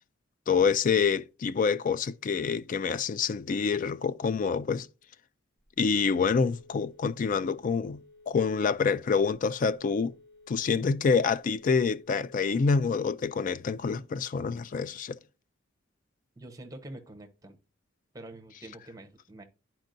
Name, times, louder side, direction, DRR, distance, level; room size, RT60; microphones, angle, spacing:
voice 1, 0.5-4.9 5.8-8.0 8.3-10.1 10.5-15.2, left 5 dB, 40° left, 0.3 m, -27 dB
Telephone, 5.6-12.9, left 2 dB, 60° left, 1.1 m, -56 dB
voice 2, 16.4-17.6 18.1-19.4, right 1 dB, 20° right, 0.8 m, -46 dB
10.5 x 4.5 x 2.5 m
head